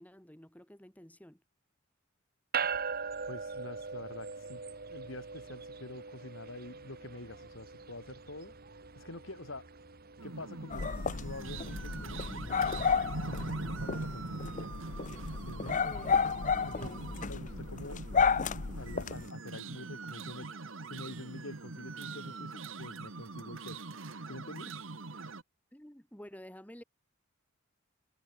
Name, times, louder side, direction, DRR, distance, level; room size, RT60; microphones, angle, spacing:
voice 1, 0.0-1.4 15.6-16.2 16.6-17.0 24.6-24.7 25.7-26.8, equal, 10° left, 2.2 m, -51 dB
sound 1, 2.5-14.1, right 5 dB, 50° right, 2.2 m, -42 dB
voice 2, 3.3-4.6 4.9-8.5 8.9-9.7 10.2-14.7 15.5-15.8 16.6-18.4 18.8-23.8 24.3-24.7, left 2 dB, 70° left, 3.4 m, -47 dB
sound 2, 10.2-25.4, right 3 dB, 70° right, 1.4 m, -42 dB
sound 3, 10.7-19.3, left 5 dB, 40° left, 0.7 m, -32 dB
head